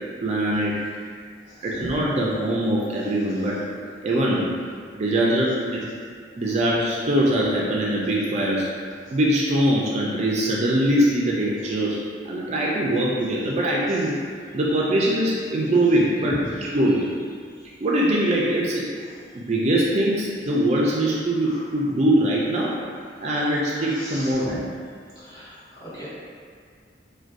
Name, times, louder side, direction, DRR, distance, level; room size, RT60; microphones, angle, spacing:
voice 1, 0.2-0.8 1.6-3.6 4.0-4.5 4.9-5.8 6.4-8.7 9.1-12.0 12.3-14.2 14.5-17.1 17.8-18.8 19.3-22.7 23.2-24.7, right 1 dB, 40° right, -5 dB, 0.4 m, -22 dB
voice 2, 23.8-24.5 25.2-26.1, equal, 20° left, -11 dB, 1.0 m, -40 dB
4.6 x 2.2 x 2.5 m, 2.1 s
head